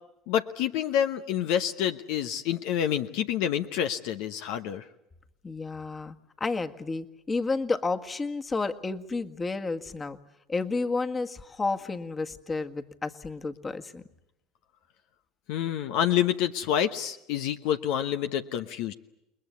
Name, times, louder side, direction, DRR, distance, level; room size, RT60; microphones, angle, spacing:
voice 1, 0.3-4.8 15.5-18.9, left 10 dB, 70° left, 8 dB, 1.0 m, -28 dB
voice 2, 5.4-6.2 6.4-10.2 10.5-14.0, left 3 dB, 25° left, 7 dB, 1.7 m, -31 dB
29.0 x 21.0 x 8.3 m, 0.84 s
hypercardioid pair, 75°, 0 cm